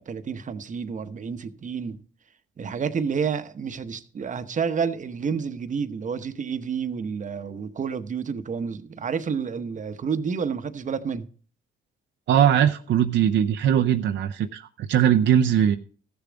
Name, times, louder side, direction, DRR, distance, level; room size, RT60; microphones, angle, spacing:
voice 1, 0.0-2.0 2.6-11.3, right 6 dB, 40° right, 0.9 m, -29 dB
voice 2, 12.3-15.8, right 9 dB, 70° right, 0.6 m, -20 dB
14.0 x 7.0 x 5.0 m
cardioid pair, 90°, 20 cm